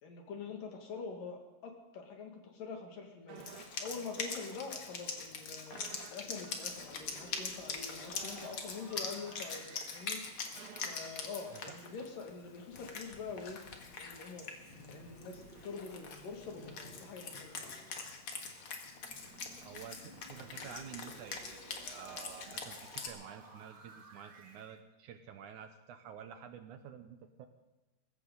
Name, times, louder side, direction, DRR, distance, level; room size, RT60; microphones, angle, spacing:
voice 1, 0.0-3.4 3.8-5.7 6.1-10.2 10.9-13.6 14.0-14.5 14.9-17.8, left 5 dB, 75° left, 2 dB, 3.8 m, -45 dB
sound 1, 3.3-4.9 5.2-5.3 5.7-12.8 13.1-13.2, right 8 dB, 85° right, 2.9 m, -56 dB
Wind instrument woodwind instrument, 3.4-23.1, left 5 dB, 50° left, 2.0 m, -44 dB
sound 2, 6.4-11.4 14.5-18.3 19.0-24.8, right 3 dB, 45° right, 1.4 m, -57 dB
voice 2, 19.6-27.5, right 8 dB, 70° right, 7 dB, 2.1 m, -50 dB
20.0 x 16.0 x 3.9 m, 1.1 s
omnidirectional pair, 4.0 m